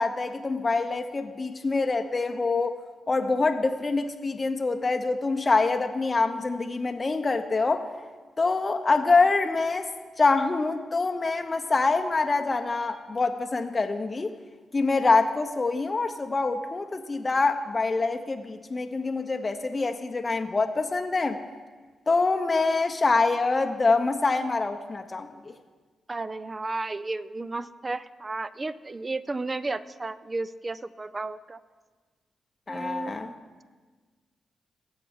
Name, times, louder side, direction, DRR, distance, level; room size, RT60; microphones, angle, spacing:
voice 1, 0.0-2.8 3.1-7.9 8.4-9.9 10.2-14.3 14.7-21.4 22.1-25.5 32.7-33.3, left 3 dB, 40° left, 5 dB, 0.6 m, -25 dB
voice 2, 26.1-31.6 32.7-33.4, right 3 dB, 35° right, 15 dB, 0.5 m, -33 dB
18.0 x 7.2 x 3.6 m, 1.4 s
supercardioid pair, 50°, 0 cm